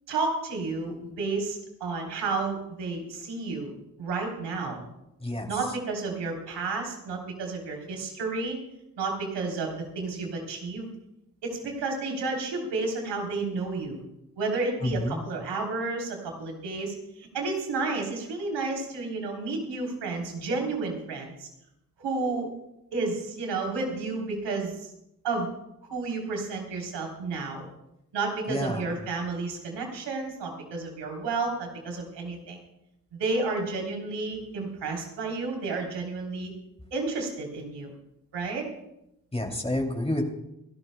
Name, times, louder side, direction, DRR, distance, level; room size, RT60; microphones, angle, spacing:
voice 1, 0.1-3.7 4.0-4.8 5.5-8.6 9.0-10.9 11.4-14.0 14.4-21.5 22.0-22.5 22.9-24.9 25.2-25.5 25.9-27.7 28.1-32.6 33.1-36.5 36.9-37.9 38.3-38.7, right 3 dB, 80° right, 1 dB, 3.5 m, -31 dB
voice 2, 14.8-15.2 28.5-28.9 39.3-40.2, left 1 dB, 15° left, 3 dB, 2.7 m, -29 dB
28.0 x 12.0 x 2.2 m, 0.84 s
supercardioid pair, 45°, 42 cm